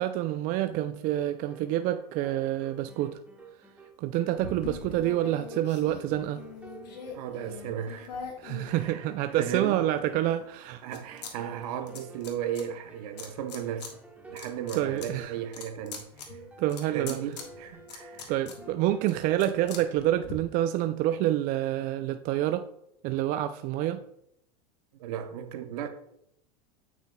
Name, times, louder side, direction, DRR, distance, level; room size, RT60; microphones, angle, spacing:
voice 1, 0.0-3.2 4.0-6.4 8.4-10.8 14.7-15.3 16.6-17.2 18.3-22.7 23.0-24.0, right 13 dB, 45° right, 0.4 m, -28 dB
sound 1, 1.0-20.2, right 4 dB, 5° right, 1.2 m, -52 dB
sound 2, 4.4-9.4 9.9-11.3 11.6-12.6 13.2-13.9 14.3-20.3, left 5 dB, 85° left, 1.5 m, -43 dB
voice 2, 7.1-8.1 8.7-9.1 9.4-9.8 10.8-14.0 14.3-16.4 16.9-18.3 24.9-25.9, right 9 dB, 70° right, 0.9 m, -35 dB
9.0 x 5.9 x 2.3 m
hypercardioid pair, 110°, 21 cm